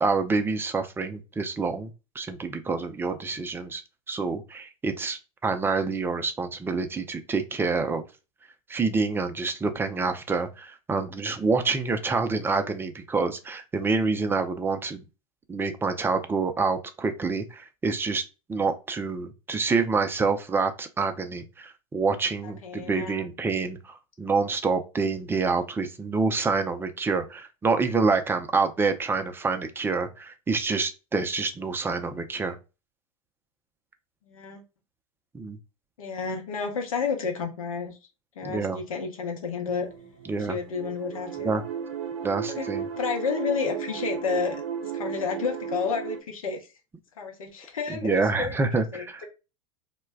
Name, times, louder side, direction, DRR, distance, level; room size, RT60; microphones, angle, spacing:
voice 1, 0.0-3.8 4.1-8.0 8.7-15.0 15.5-18.2 18.5-32.6 35.3-35.6 38.4-38.8 40.3-40.6 41.4-41.6 42.2-42.9 47.9-49.3, right 4 dB, 10° right, 7 dB, 0.4 m, -27 dB
voice 2, 22.6-23.3 34.2-34.6 36.0-38.0 38.4-39.9 40.5-41.6 42.5-42.7 43.0-46.7 47.2-49.3, left 5 dB, 70° left, 3 dB, 0.8 m, -31 dB
sound 1, 39.7-46.2, right 8 dB, 70° right, 0.6 m, -34 dB
2.2 x 2.1 x 3.3 m, 0.29 s
figure-of-eight pair, 85°, 18 cm